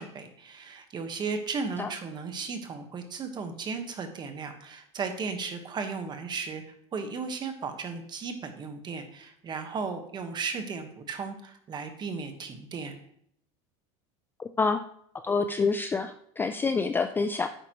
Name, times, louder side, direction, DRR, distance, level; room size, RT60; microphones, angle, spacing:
voice 1, 0.0-6.6 6.9-13.0, right 5 dB, 30° right, 6 dB, 1.4 m, -35 dB
voice 2, 14.4-14.8 15.2-17.5, left 4 dB, 15° left, 8 dB, 0.4 m, -27 dB
10.5 x 8.4 x 3.1 m, 0.67 s
supercardioid pair, 140°, 16 cm